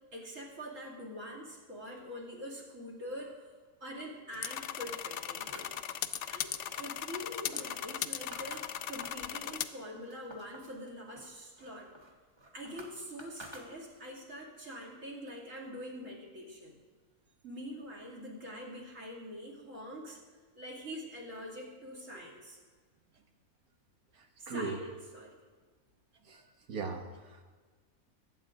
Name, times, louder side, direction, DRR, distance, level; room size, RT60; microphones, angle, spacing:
voice 1, 0.1-3.5 3.8-5.7 6.3-11.9 12.5-16.8 17.4-20.2 20.6-22.6 24.4-25.4, equal, 60° right, -1 dB, 2.8 m, -44 dB
sound 1, 4.3-9.7, left 10 dB, 65° left, 0.8 m, -38 dB
sound 2, 5.5-9.3 9.7-10.8 11.2-14.2, right 1 dB, 20° right, 1.0 m, -53 dB
voice 2, 24.2-24.8 26.3-26.4 26.7-27.4, right 4 dB, 85° right, 3 dB, 1.8 m, -39 dB
22.0 x 8.0 x 3.8 m, 1.5 s
omnidirectional pair, 1.5 m